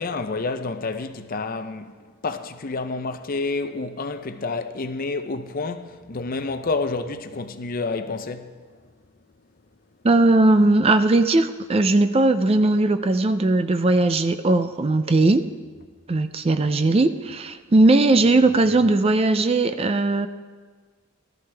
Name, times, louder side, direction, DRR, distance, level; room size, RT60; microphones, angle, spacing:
voice 1, 0.0-2.0 2.2-8.5, left 3 dB, 40° left, 0.6 m, -29 dB
voice 2, 10.0-15.5 16.1-20.3, right 2 dB, 25° right, 0.4 m, -18 dB
17.5 x 13.0 x 3.4 m
head